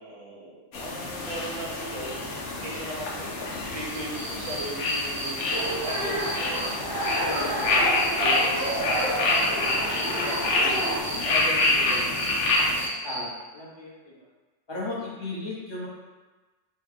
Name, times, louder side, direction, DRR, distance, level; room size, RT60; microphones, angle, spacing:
voice 1, 0.0-3.3 3.7-6.7 7.2-9.7 10.2-12.2, right 1 dB, 40° right, -4 dB, 0.6 m, -37 dB
sound 1, 0.7-12.9, left 2 dB, 75° left, 0.9 m, -27 dB
Cricket, 3.9-6.7 7.0-10.4 10.7-13.2, right 2 dB, 85° right, 1.3 m, -35 dB
sound 2, 5.5-11.0, right 1 dB, 20° right, 1.0 m, -30 dB
voice 2, 7.2-7.7 11.9-12.1 13.0-14.3 14.7-15.9, left 2 dB, 25° left, -6 dB, 0.7 m, -36 dB
3.3 x 2.2 x 3.4 m, 1.2 s
omnidirectional pair, 1.2 m